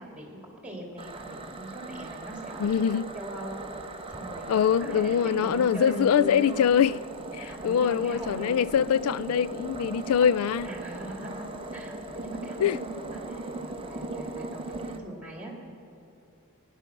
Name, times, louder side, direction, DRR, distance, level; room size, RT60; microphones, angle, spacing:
voice 1, 0.0-3.7 4.1-4.5 4.8-6.6 7.4-8.6 10.6-15.5, right 1 dB, 5° right, 2.5 m, -40 dB
sound 1, 1.0-15.0, right 2 dB, 25° right, 0.7 m, -39 dB
voice 2, 2.6-3.1 4.5-7.0 7.3-10.7 12.6-12.8, left 8 dB, 75° left, 0.3 m, -23 dB
18.0 x 10.5 x 5.9 m
head